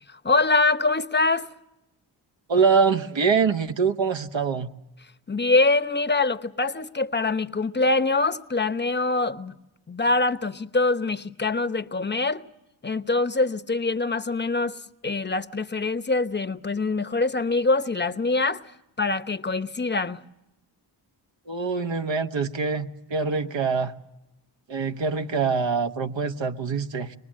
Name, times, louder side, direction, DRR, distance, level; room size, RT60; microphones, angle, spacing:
voice 1, 0.1-1.5 5.3-9.6 9.9-12.4 12.8-14.8 15.0-18.6 19.0-20.2, left 3 dB, 20° left, 1.0 m, -24 dB
voice 2, 2.5-4.7 21.5-23.9 24.7-27.2, right 5 dB, 60° right, 1.3 m, -24 dB
24.0 x 19.5 x 7.5 m
cardioid pair, 45°, 49 cm